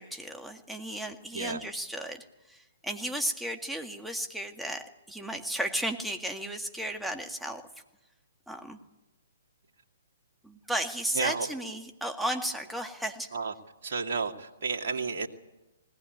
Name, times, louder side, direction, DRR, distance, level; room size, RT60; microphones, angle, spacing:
voice 1, 0.0-7.6 8.5-8.8 10.4-13.3, right 1 dB, 5° right, 4 dB, 1.9 m, -34 dB
voice 2, 11.1-11.5 13.3-13.5 13.8-15.3, right 4 dB, 55° right, 1 dB, 2.3 m, -31 dB
20.0 x 19.0 x 9.6 m, 1.0 s
hypercardioid pair, 130°, 0 cm